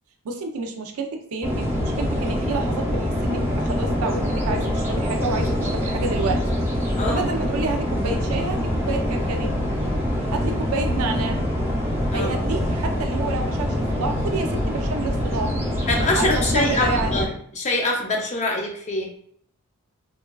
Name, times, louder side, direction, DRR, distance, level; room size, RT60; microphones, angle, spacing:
voice 1, 0.2-6.5 7.1-9.5 10.3-11.4 12.1-15.6 16.2-17.3, right 3 dB, 70° right, 4 dB, 0.4 m, -29 dB
sound 1, 1.4-17.3, equal, 10° right, 0.7 m, -24 dB
voice 2, 15.9-17.3 17.6-19.1, left 2 dB, 30° left, 1 dB, 0.5 m, -24 dB
3.0 x 2.2 x 2.2 m, 0.65 s
head